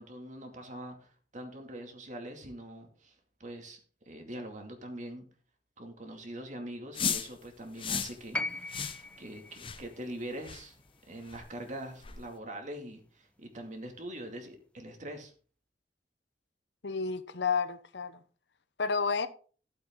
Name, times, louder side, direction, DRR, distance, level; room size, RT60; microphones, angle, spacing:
voice 1, 0.0-3.1 3.4-3.8 4.1-5.2 5.8-8.7 9.2-10.7 11.1-15.3, right 1 dB, 45° right, 2.3 m, -43 dB
sound 1, 6.9-7.3 7.8-8.2 8.7-9.0 9.5-9.8 10.4-10.6 11.3-11.4 12.0-12.2, left 7 dB, 30° left, 0.8 m, -34 dB
sound 2, 8.3-12.5 13.7-13.8, left 2 dB, 5° left, 0.4 m, -41 dB
voice 2, 16.8-18.2 18.8-19.3, left 5 dB, 80° left, 0.9 m, -30 dB
12.5 x 7.8 x 3.7 m
head